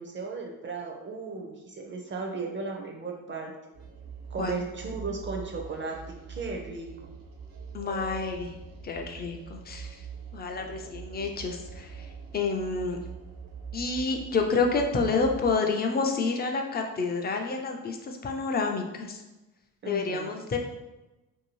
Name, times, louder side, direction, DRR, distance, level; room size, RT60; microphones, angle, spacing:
voice 1, 0.0-3.5 4.3-6.0 6.3-7.1 19.8-20.3, right 4 dB, 35° right, 1 dB, 0.5 m, -35 dB
sound 1, 3.7-15.5, right 5 dB, 70° right, 0.7 m, -43 dB
voice 2, 7.7-8.5 8.8-9.9 10.3-11.9 12.3-13.0 13.7-19.2 19.9-20.6, left 4 dB, 30° left, 3 dB, 0.4 m, -29 dB
2.7 x 2.6 x 3.0 m, 1.0 s
cardioid pair, 135°, 35 cm